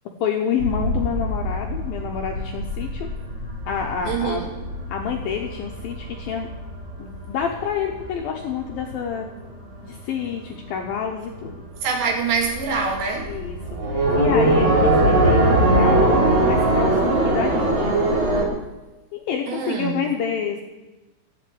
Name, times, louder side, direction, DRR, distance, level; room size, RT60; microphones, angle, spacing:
voice 1, 0.2-3.1 3.7-4.4 4.9-6.5 7.0-9.3 9.8-11.6 13.3-13.6 13.9-17.9 19.1-20.6, left 7 dB, 75° left, 1 dB, 2.2 m, -28 dB
sound 1, 0.6-9.5 9.8-10.6 10.9-11.0 11.3-18.4, right 1 dB, 30° right, 3.3 m, -22 dB
voice 2, 4.1-4.5 11.8-13.3 19.5-20.0, right 5 dB, 70° right, 2 dB, 4.2 m, -25 dB
13.5 x 8.4 x 8.8 m, 1.1 s
omnidirectional pair, 5.4 m